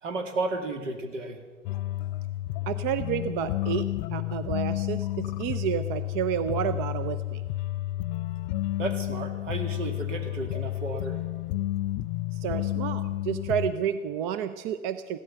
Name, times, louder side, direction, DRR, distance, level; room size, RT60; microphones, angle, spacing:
voice 1, 0.0-1.4 8.8-11.2, right 2 dB, 65° right, 5 dB, 2.5 m, -33 dB
sound 1, 1.6-13.7, left 15 dB, 35° left, 0.5 m, -31 dB
voice 2, 2.7-7.4 12.3-15.2, right 9 dB, 35° right, 12 dB, 0.7 m, -30 dB
16.0 x 13.0 x 6.9 m, 1.5 s
figure-of-eight pair, 100°, 40 cm